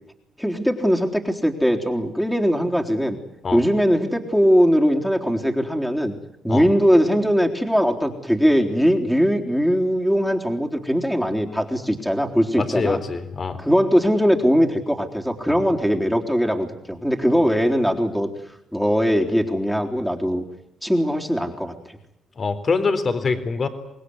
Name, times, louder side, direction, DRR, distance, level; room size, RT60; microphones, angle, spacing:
voice 1, 0.4-3.2 3.5-6.2 6.4-13.0 13.6-18.3 18.7-20.4 20.8-22.0, equal, ahead, 1 dB, 3.8 m, -20 dB
voice 2, 12.6-13.6 22.4-23.7, left 4 dB, 45° left, 10 dB, 3.8 m, -24 dB
26.0 x 20.5 x 9.8 m, 0.79 s
hypercardioid pair, 45°, 0 cm